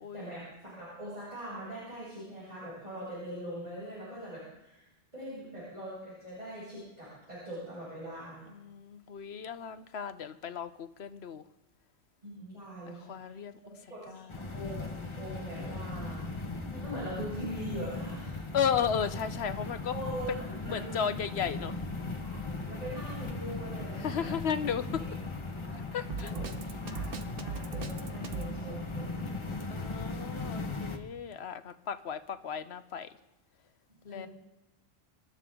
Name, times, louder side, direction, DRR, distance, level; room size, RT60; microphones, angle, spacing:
voice 1, 0.1-8.5 12.2-13.3 13.6-16.2 16.7-18.4 19.9-20.9 22.2-24.3 25.7-25.9 26.2-29.4 34.1-34.3, equal, 40° right, 7.5 m, -42 dB
voice 2, 8.4-11.4 12.9-13.8 14.1-14.4 18.5-20.0 20.6-21.8 24.0-25.0 25.9-26.3 29.7-33.1 34.0-34.3, left 7 dB, 85° left, 1.1 m, -34 dB
sound 1, 14.3-31.0, left 3 dB, 30° left, 1.3 m, -38 dB
Drum kit, 26.1-28.5, right 5 dB, 60° right, 1.1 m, -38 dB
27.0 x 13.0 x 3.8 m
omnidirectional pair, 1.1 m